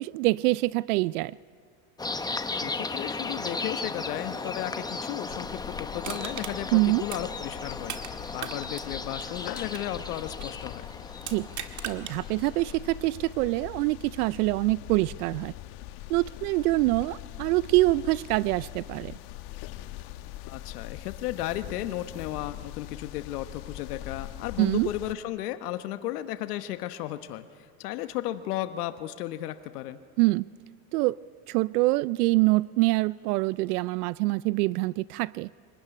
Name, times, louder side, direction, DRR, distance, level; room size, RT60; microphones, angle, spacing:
voice 1, 0.0-1.3 6.7-7.0 11.3-11.5 11.8-15.5 16.1-19.2 24.6-24.9 30.2-30.5 30.9-31.2 31.5-35.5, right 21 dB, 75° right, 20 dB, 0.5 m, -25 dB
sound 1, 2.0-12.9, left 3 dB, 10° left, 0.9 m, -36 dB
voice 2, 2.6-10.8 20.5-30.0, left 13 dB, 85° left, 10 dB, 1.2 m, -34 dB
sound 2, 5.3-25.1, left 14 dB, 60° left, 1.3 m, -42 dB
Crushing, 6.0-8.1 8.4-10.6 11.2-12.2 12.6-12.7, right 10 dB, 40° right, 1.9 m, -39 dB
24.5 x 20.0 x 10.0 m, 2.1 s
supercardioid pair, 110°, 45 cm